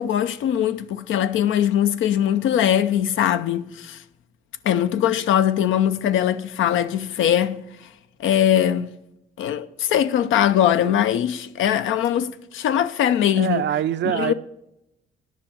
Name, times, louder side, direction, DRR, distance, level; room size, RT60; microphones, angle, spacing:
voice 1, 0.0-4.0 4.6-7.9 8.2-8.9 9.4-13.6 14.1-14.3, left 10 dB, 80° left, 0.7 m, -21 dB
voice 2, 13.4-14.3, right 11 dB, 65° right, 0.6 m, -24 dB
10.5 x 6.3 x 7.3 m
cardioid pair, 90°, 20 cm